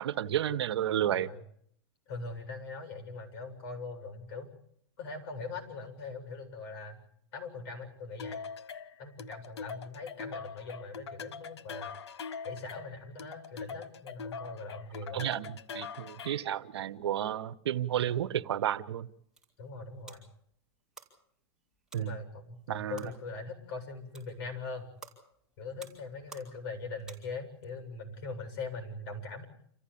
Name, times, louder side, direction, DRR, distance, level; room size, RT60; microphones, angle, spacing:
voice 1, 0.0-1.3 15.1-19.1 21.9-22.2 22.7-23.0, right 11 dB, 80° right, 16 dB, 1.3 m, -32 dB
voice 2, 1.0-1.4 2.1-4.5 5.0-7.0 7.3-8.4 9.0-11.9 12.4-15.3 18.0-18.2 19.6-20.3 21.9-24.9 25.6-29.4, left 3 dB, 45° left, 7 dB, 7.5 m, -41 dB
sound 1, 8.2-16.5, left 5 dB, 90° left, 1.4 m, -43 dB
sound 2, 19.0-27.7, right 4 dB, 5° right, 5.4 m, -56 dB
28.0 x 15.0 x 8.6 m, 0.69 s
hypercardioid pair, 145°, 14 cm